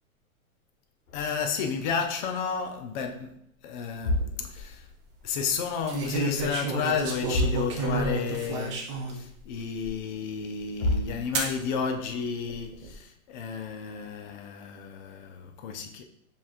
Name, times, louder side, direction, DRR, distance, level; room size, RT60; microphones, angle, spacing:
sound 1, 1.1-2.7 3.0-3.3 3.8-5.7 5.9-6.6 6.9-7.0 7.2-8.3 8.6-8.7 9.3-9.4 10.4-10.5 10.8-11.8, left 1 dB, 65° left, 1.4 m, -32 dB
voice 1, 1.1-4.9 5.2-16.0, left 6 dB, 35° left, 0.5 m, -32 dB
sound 2, 4.2-4.6 5.9-9.2 9.8-9.9 11.3-11.6 12.4-12.9, right 3 dB, 25° right, 0.4 m, -31 dB
6.9 x 3.0 x 2.4 m
hypercardioid pair, 145°, 43 cm